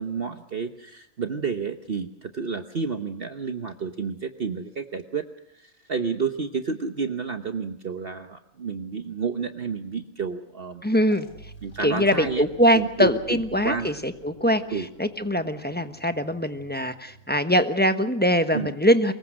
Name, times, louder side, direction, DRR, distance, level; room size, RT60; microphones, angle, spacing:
voice 1, 0.0-5.3 5.6-10.8 11.6-12.5 12.7-13.4 13.6-13.9 14.7-14.9 18.5-18.7, right 5 dB, 45° right, 7 dB, 1.2 m, -30 dB
voice 2, 10.8-11.3 11.8-19.1, equal, 10° left, 9 dB, 1.0 m, -22 dB
sound 1, 11.1-17.7, right 4 dB, 90° left, 4.2 m, -49 dB
24.5 x 22.0 x 6.3 m, 0.76 s
omnidirectional pair, 1.5 m